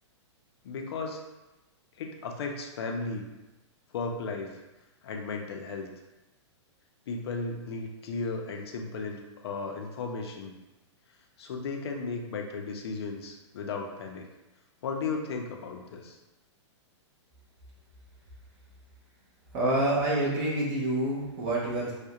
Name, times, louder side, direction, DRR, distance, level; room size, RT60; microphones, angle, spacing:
voice 1, 0.6-1.2 2.0-3.3 3.9-4.6 5.0-5.9 7.1-10.5 11.4-14.3 14.8-16.2, left 4 dB, 60° left, 2 dB, 0.4 m, -35 dB
voice 2, 19.5-21.9, right 1 dB, 25° right, -4 dB, 0.5 m, -27 dB
2.3 x 2.1 x 2.7 m, 1.0 s
hypercardioid pair, 170°, 15 cm